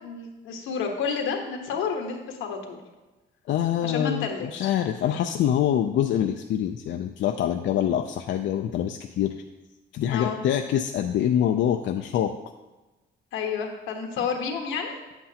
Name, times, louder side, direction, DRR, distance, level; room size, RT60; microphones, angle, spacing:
voice 1, 0.0-2.8 3.8-4.7 10.1-10.4 13.3-14.9, left 6 dB, 85° left, 3 dB, 1.2 m, -30 dB
voice 2, 3.5-9.3 9.9-12.4, left 10 dB, 70° left, 5 dB, 0.4 m, -25 dB
8.4 x 7.9 x 2.8 m, 1.1 s
cardioid pair, 90°, 20 cm